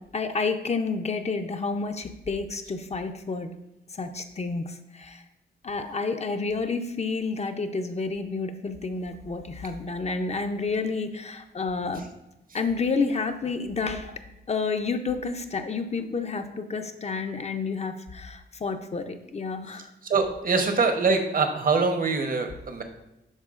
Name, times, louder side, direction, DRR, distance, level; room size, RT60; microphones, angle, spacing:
voice 1, 0.1-3.5 3.9-5.2 5.6-12.1 12.5-14.1 14.5-19.9, left 4 dB, 35° left, 7 dB, 0.5 m, -30 dB
voice 2, 20.1-22.8, right 4 dB, 50° right, 6 dB, 0.9 m, -24 dB
12.0 x 4.5 x 2.4 m, 0.92 s
wide cardioid pair, 120°, 18 cm